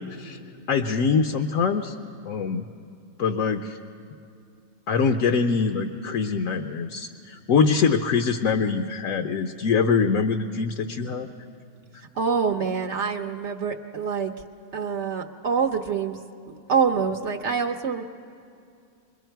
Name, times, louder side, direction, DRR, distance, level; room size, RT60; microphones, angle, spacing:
voice 1, 0.7-2.0 2.3-2.7 3.2-3.8 4.9-11.3, left 5 dB, 65° left, 6 dB, 1.0 m, -24 dB
voice 2, 11.9-14.3 14.7-16.2 16.7-18.0, right 6 dB, 60° right, 5 dB, 0.9 m, -26 dB
28.0 x 21.5 x 4.6 m, 2.4 s
omnidirectional pair, 1.5 m